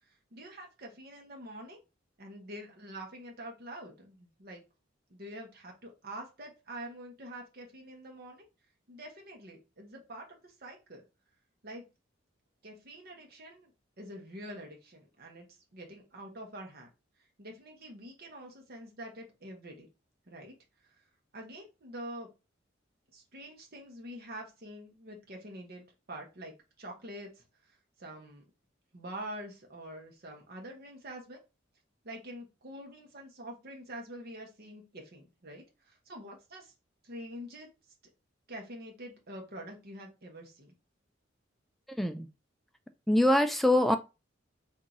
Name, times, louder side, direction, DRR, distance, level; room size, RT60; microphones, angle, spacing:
voice 1, 0.1-1.8 2.2-4.6 5.1-8.5 8.9-11.0 11.6-11.8 12.6-13.7 14.0-15.5 15.7-16.9 17.4-19.9 20.3-20.6 20.8-20.9 21.3-22.3 23.1-28.4 28.9-31.4 32.0-36.7 37.0-37.7 38.5-40.8, right 1 dB, 55° right, 1.1 m, -46 dB
voice 2, 43.1-44.0, left 1 dB, ahead, 0.3 m, -24 dB
3.9 x 2.7 x 2.9 m
head